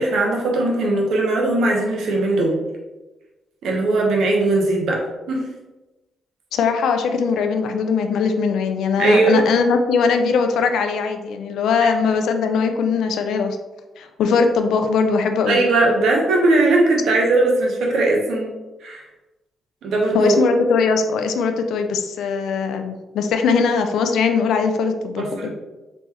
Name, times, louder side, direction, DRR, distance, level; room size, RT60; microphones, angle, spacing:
voice 1, 0.0-2.5 3.6-5.4 9.0-9.4 11.8-11.9 15.5-18.5 18.8-19.0 19.8-20.4 25.2-25.6, right 2 dB, 70° right, -1 dB, 0.9 m, -19 dB
voice 2, 6.5-13.6 14.0-15.6 20.1-25.5, left 5 dB, 75° left, 6 dB, 0.3 m, -20 dB
3.6 x 3.0 x 2.8 m, 1.1 s
supercardioid pair, 50°, 0 cm